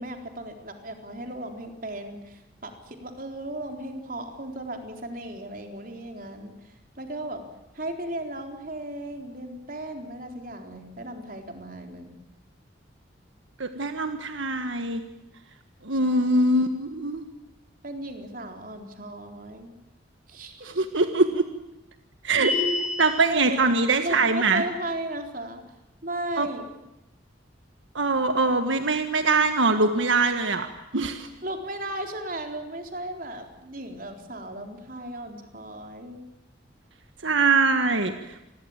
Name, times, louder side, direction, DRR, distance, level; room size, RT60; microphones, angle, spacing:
voice 1, 0.0-6.5 7.0-7.4 7.7-12.1 15.9-16.2 17.8-19.8 20.3-20.8 23.3-23.6 24.0-25.6 26.0-26.6 31.4-36.2, right 1 dB, 45° right, 4 dB, 4.0 m, -36 dB
voice 2, 13.6-15.0 15.8-17.2 20.8-21.4 22.2-22.5 23.0-24.6 26.4-26.5 27.9-30.7 30.9-31.3 37.2-38.1, right 3 dB, 80° right, 8 dB, 1.6 m, -22 dB
sound 1, 22.4-23.3, left 3 dB, 5° right, 8.0 m, -27 dB
28.0 x 21.5 x 8.9 m, 0.95 s
head